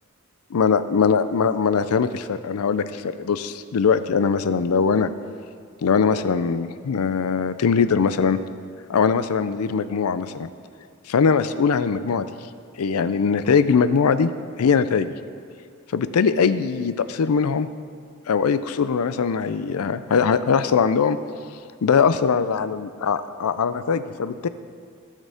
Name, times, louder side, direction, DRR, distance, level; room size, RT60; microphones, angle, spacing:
voice 1, 0.5-5.1 5.8-8.4 8.9-10.5 11.1-12.3 12.8-14.3 14.6-15.1 15.9-17.7 18.3-21.2 21.8-24.5, left 6 dB, 85° left, 13 dB, 0.4 m, -21 dB
16.0 x 6.5 x 3.5 m, 2.2 s
head